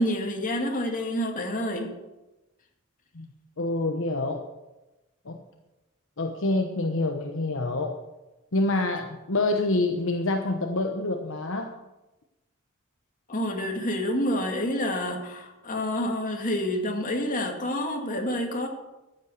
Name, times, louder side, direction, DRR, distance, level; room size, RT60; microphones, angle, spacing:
voice 1, 0.0-1.9 13.3-18.7, equal, 40° left, 2 dB, 2.3 m, -28 dB
voice 2, 3.6-4.5 5.2-5.4 6.2-8.0 8.5-11.7, left 2 dB, 65° left, 4 dB, 1.1 m, -27 dB
14.5 x 8.4 x 6.7 m, 1.0 s
head